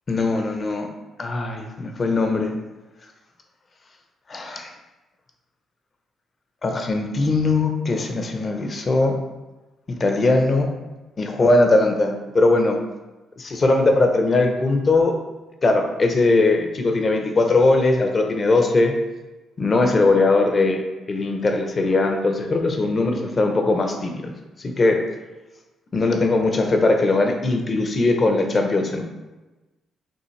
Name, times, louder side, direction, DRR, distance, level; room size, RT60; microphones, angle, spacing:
voice 1, 0.1-0.9 1.2-2.5 4.3-4.7 6.6-9.2 10.0-10.7 11.2-12.8 13.4-15.2 15.6-19.0 19.6-20.8 21.1-24.3 24.6-25.0 25.9-29.0, left 2 dB, 35° left, 4 dB, 0.7 m, -20 dB
5.4 x 3.0 x 3.2 m, 1.1 s
cardioid pair, 90°, 0 cm